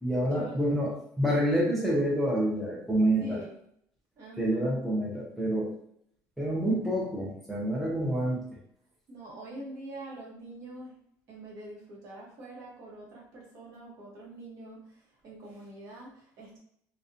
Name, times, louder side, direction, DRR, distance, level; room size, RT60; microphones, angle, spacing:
voice 1, 0.0-3.4 4.4-5.7 6.4-8.4, right 1 dB, ahead, -4 dB, 0.4 m, -27 dB
voice 2, 3.2-3.6 4.2-4.8 9.1-10.9 11.3-14.8 15.2-16.6, right 2 dB, 45° right, -3 dB, 0.8 m, -44 dB
2.5 x 2.1 x 2.5 m, 0.70 s
cardioid pair, 180°, 7 cm